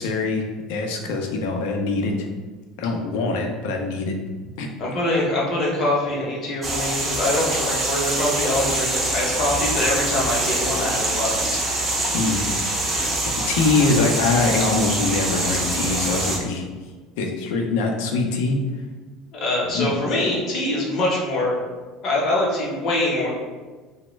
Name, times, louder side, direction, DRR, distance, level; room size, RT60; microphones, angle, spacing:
voice 1, 0.0-2.3 2.8-4.2 4.6-4.7 12.1-12.4 12.9-16.6 17.2-18.6 19.7-20.0, left 3 dB, 85° left, 3 dB, 0.5 m, -23 dB
voice 2, 4.8-11.6 19.3-21.6 22.0-23.3, left 1 dB, 35° left, -4 dB, 0.7 m, -24 dB
sound 1, 6.6-16.4, right 2 dB, 20° right, 0.5 m, -24 dB
3.1 x 2.1 x 3.1 m, 1.3 s
cardioid pair, 165°, 0 cm